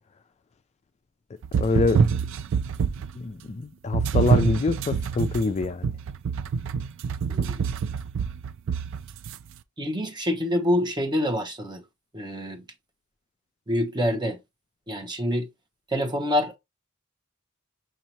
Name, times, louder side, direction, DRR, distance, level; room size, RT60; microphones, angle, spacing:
sound 1, 1.4-3.2 3.9-9.4, right 6 dB, 65° right, 0.4 m, -26 dB
voice 1, 1.6-2.0 3.2-5.9, left 3 dB, 30° left, 0.3 m, -25 dB
voice 2, 7.3-7.7 9.8-11.8 12.1-12.6 13.7-14.4 14.9-15.5 15.9-16.5, left 1 dB, 20° right, 0.9 m, -26 dB
6.2 x 2.8 x 2.8 m
head